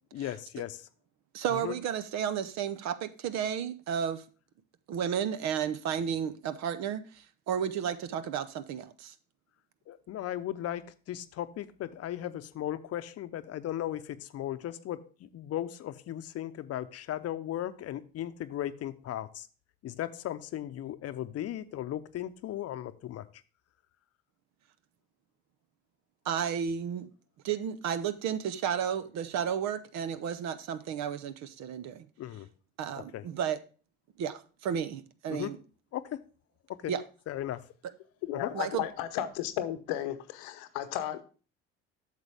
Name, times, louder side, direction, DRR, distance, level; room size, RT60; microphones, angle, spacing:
voice 1, 0.1-0.8 1.5-1.7 9.9-10.8 11.1-19.5 19.8-23.3 32.2-32.5 32.9-33.3 35.3-35.5 35.9-36.0 36.8-36.9 37.3-37.6 38.3-38.5, left 12 dB, 50° left, 0.7 m, -36 dB
voice 2, 1.3-4.2 4.9-9.1 26.2-27.1 27.4-32.1 32.8-33.6 34.2-35.6 36.9-37.0 38.5-38.8, right 8 dB, 60° right, 0.8 m, -32 dB
voice 3, 38.3-41.2, left 12 dB, 75° left, 0.9 m, -34 dB
8.2 x 6.7 x 3.4 m
hypercardioid pair, 65°, 31 cm